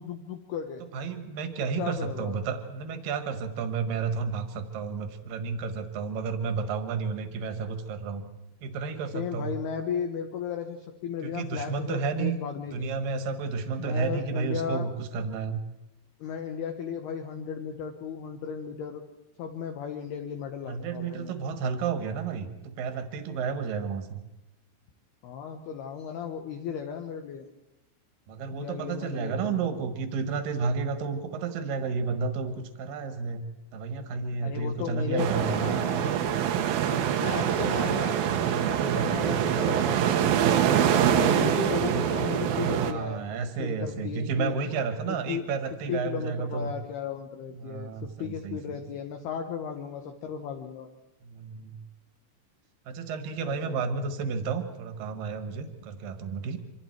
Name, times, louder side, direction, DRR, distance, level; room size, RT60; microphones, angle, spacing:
voice 1, 0.0-0.8 1.8-2.4 9.1-12.9 13.8-14.9 16.2-19.0 19.4-21.3 25.2-27.5 28.5-29.9 34.4-36.2 36.8-38.2 38.6-40.2 41.0-43.3 43.6-44.5 45.1-45.4 45.9-50.9 53.4-53.8, left 7 dB, 70° left, 5 dB, 2.6 m, -35 dB
voice 2, 0.9-8.2 8.6-9.5 11.2-12.4 12.7-15.6 20.7-24.2 28.3-32.5 32.8-33.4 33.7-35.7 39.0-39.4 42.6-46.7 47.6-48.8 51.2-51.8 52.9-56.6, right 5 dB, 60° right, 8 dB, 2.5 m, -31 dB
sound 1, 35.2-42.9, right 9 dB, 80° right, 2.1 m, -25 dB
27.0 x 25.0 x 4.6 m, 0.93 s
omnidirectional pair, 5.9 m